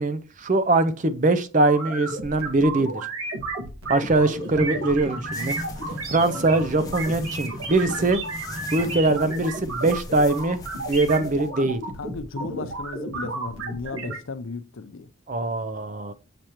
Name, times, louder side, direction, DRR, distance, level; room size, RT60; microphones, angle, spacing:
voice 1, 0.0-3.0 3.9-5.6 6.1-8.2 8.7-10.6 10.9-11.8 15.3-16.1, right 2 dB, 35° right, 0.5 m, -22 dB
sound 1, 1.6-14.2, right 2 dB, 85° right, 1.8 m, -33 dB
sound 2, 4.0-9.0, equal, 55° right, 2.4 m, -37 dB
sound 3, 5.3-11.5, left 3 dB, 15° left, 0.9 m, -44 dB
voice 2, 12.0-15.1, left 3 dB, 70° left, 0.6 m, -35 dB
7.4 x 5.0 x 3.0 m
head